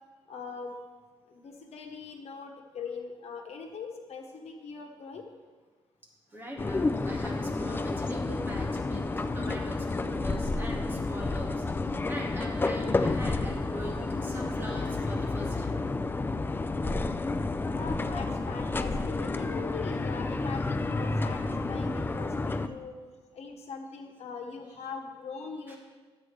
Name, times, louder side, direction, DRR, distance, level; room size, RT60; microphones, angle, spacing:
voice 1, 0.3-0.7 1.3-5.2 10.1-10.2 13.8-14.1 17.7-23.0 23.3-25.8, left 5 dB, 75° left, 3 dB, 1.3 m, -41 dB
voice 2, 6.3-15.8 25.7-25.8, right 1 dB, 20° right, -2 dB, 2.0 m, -42 dB
sound 1, 6.6-22.7, left 3 dB, 20° left, 0.4 m, -30 dB
13.0 x 7.7 x 3.4 m, 1.4 s
wide cardioid pair, 130°, 11 cm